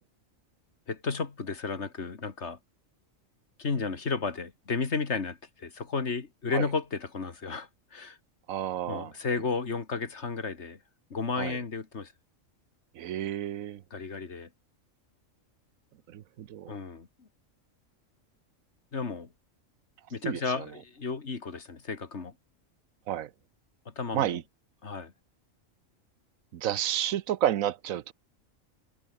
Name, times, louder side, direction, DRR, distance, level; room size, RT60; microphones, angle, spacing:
voice 1, 0.9-2.6 3.6-8.2 8.9-10.8 11.1-12.1 13.9-14.5 16.7-17.3 18.9-19.3 20.1-22.3 23.9-24.4 24.8-25.1, left 4 dB, 55° left, 2.2 m, -33 dB
voice 2, 8.5-9.1 11.4-11.6 12.9-13.8 16.1-16.8 20.2-20.7 23.1-23.3 24.1-24.4 26.5-28.1, right 11 dB, 90° right, 1.2 m, -31 dB
omnidirectional pair, 1.4 m